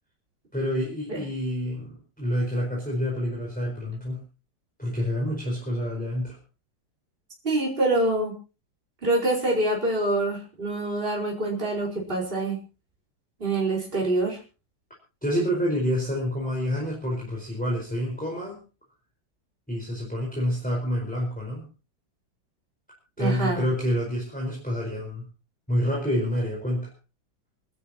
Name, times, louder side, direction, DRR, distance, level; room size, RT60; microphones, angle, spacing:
voice 1, 0.5-4.2 4.8-6.4 15.2-18.6 19.7-21.7 23.2-25.3 25.7-26.9, equal, 5° left, -3 dB, 4.5 m, -28 dB
voice 2, 7.4-8.3 9.0-12.6 13.4-14.4 23.2-23.6, right 2 dB, 25° right, -3 dB, 4.7 m, -25 dB
27.5 x 12.5 x 2.9 m, 0.33 s
omnidirectional pair, 2.1 m